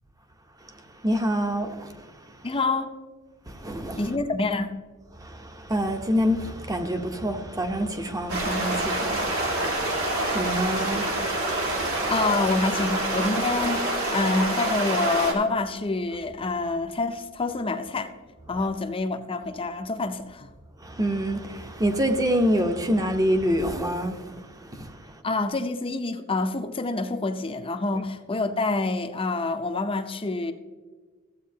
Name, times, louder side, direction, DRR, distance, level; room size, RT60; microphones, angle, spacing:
voice 1, 1.0-1.9 3.5-4.0 5.2-12.1 20.8-24.9, equal, 15° right, 0.8 m, -27 dB
voice 2, 2.4-2.9 4.0-4.8 11.2-11.3 12.1-18.1 18.5-20.5 25.2-30.5, left 3 dB, 25° left, 0.6 m, -27 dB
sound 1, 8.3-15.3, right 2 dB, 65° right, 2.1 m, -27 dB
14.5 x 8.2 x 2.8 m
head